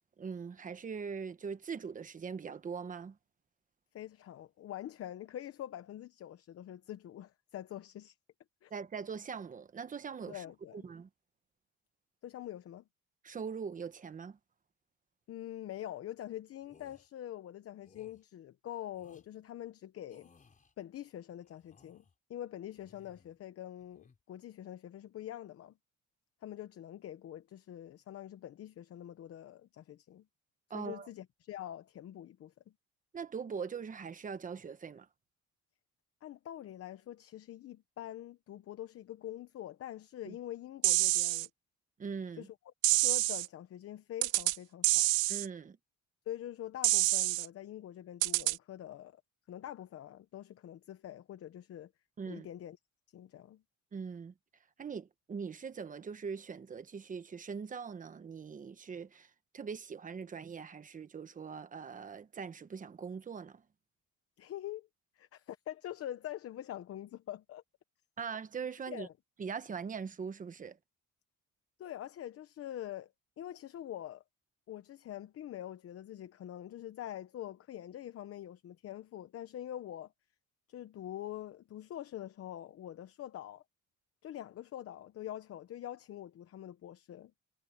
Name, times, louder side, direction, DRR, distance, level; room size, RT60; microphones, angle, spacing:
voice 1, 0.2-3.2 8.7-10.4 10.7-11.1 13.2-14.4 30.7-31.1 33.1-35.1 40.3-40.4 42.0-42.5 45.3-45.8 52.2-52.5 53.9-54.3 54.8-59.3 59.5-63.6 68.2-69.1 69.4-70.8, right 6 dB, 25° right, 1.1 m, -41 dB
voice 2, 3.9-8.2 8.6-8.7 10.3-10.9 12.2-12.8 15.3-20.3 20.8-22.0 22.3-25.7 26.4-30.2 30.7-32.5 36.2-41.5 42.3-42.6 42.9-45.1 46.3-49.2 49.5-51.9 52.3-52.8 53.1-53.6 64.4-64.9 65.2-67.6 68.9-69.1 71.8-73.1 73.4-74.2 74.7-80.1 80.7-83.6 84.2-87.3, left 12 dB, 50° left, 0.9 m, -45 dB
sound 1, 16.6-17.1 17.8-18.2 18.9-19.3 20.1-20.7 21.4-22.1 22.7-23.4 23.8-24.2, left 5 dB, 25° left, 4.8 m, -63 dB
sound 2, 40.8-41.5 42.8-43.5 44.2-44.6 44.8-45.5 46.8-47.5 48.2-48.6, right 20 dB, 80° right, 0.5 m, -27 dB
cardioid pair, 150°, 31 cm